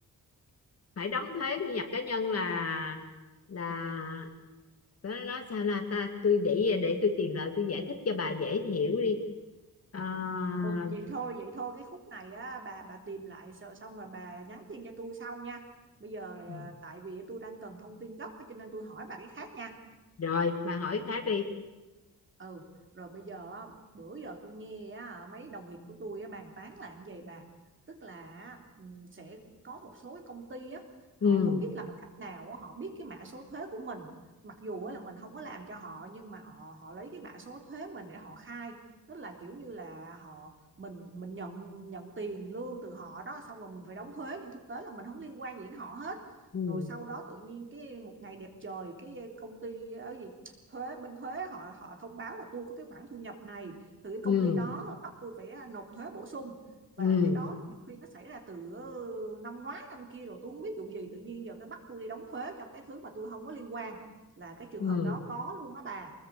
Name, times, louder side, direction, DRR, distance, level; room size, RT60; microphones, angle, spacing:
voice 1, 1.0-3.0 3.5-4.3 5.0-9.2 9.9-11.0 16.5-16.6 20.2-21.4 31.2-31.6 46.5-46.9 54.2-54.6 57.0-57.4 64.8-65.1, left 5 dB, 45° left, 5 dB, 2.5 m, -29 dB
voice 2, 10.6-15.7 16.0-19.8 22.4-27.5 27.9-30.9 31.2-34.1 34.4-38.8 39.1-46.3 46.7-56.7 56.9-64.0 64.4-66.1, right 3 dB, 35° right, 3 dB, 3.5 m, -42 dB
25.0 x 20.0 x 8.5 m, 1.1 s
wide cardioid pair, 160°, 34 cm